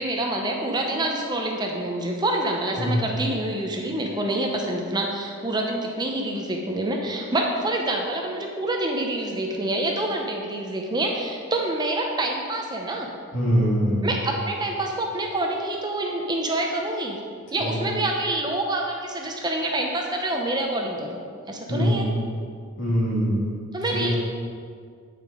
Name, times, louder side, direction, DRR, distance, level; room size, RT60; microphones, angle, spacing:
voice 1, 0.0-13.1 14.0-17.2 17.5-22.1 23.7-24.2, right 1 dB, 20° right, 1 dB, 0.7 m, -27 dB
voice 2, 13.3-14.1 17.6-17.8 21.7-22.1 22.8-23.6 23.9-24.2, equal, 60° left, -4 dB, 2.2 m, -23 dB
8.8 x 6.8 x 4.9 m, 2.1 s
head